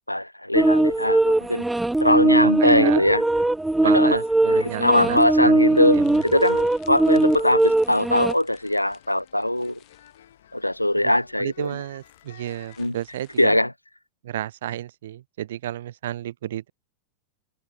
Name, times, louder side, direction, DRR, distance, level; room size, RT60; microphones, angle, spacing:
voice 1, 0.0-1.6 2.0-3.2 3.9-4.2 4.8-6.0 6.2-9.8 10.5-11.7 12.8-12.9 13.4-13.7, left 1 dB, 85° left, 0.6 m, -21 dB
sound 1, 0.5-8.3, right 2 dB, 5° right, 0.4 m, -20 dB
voice 2, 2.0-3.1 3.8-6.2 11.0-11.1 11.4-13.6 14.2-16.7, right 12 dB, 60° right, 1.9 m, -32 dB
sound 2, 4.6-12.9, left 10 dB, 60° left, 6.5 m, -54 dB
sound 3, 5.7-13.5, left 19 dB, 40° left, 5.1 m, -56 dB
figure-of-eight pair, 90°, 0 cm